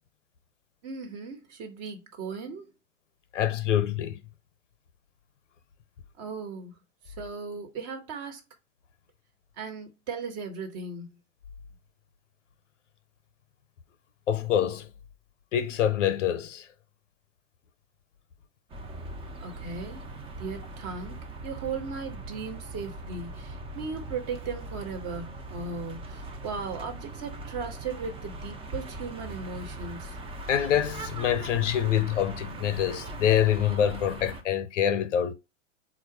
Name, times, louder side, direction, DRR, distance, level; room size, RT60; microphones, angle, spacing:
voice 1, 0.8-2.7 6.2-6.7 7.0-8.4 9.6-11.1 19.4-20.0 20.4-30.2, right 4 dB, 40° right, 1.3 m, -37 dB
voice 2, 3.3-4.2 14.3-14.9 15.5-16.7 30.5-35.3, left 10 dB, 70° left, 0.7 m, -25 dB
sound 1, 18.7-34.4, right 2 dB, 15° right, 0.5 m, -40 dB
3.9 x 2.4 x 4.7 m
hypercardioid pair, 105°, 38 cm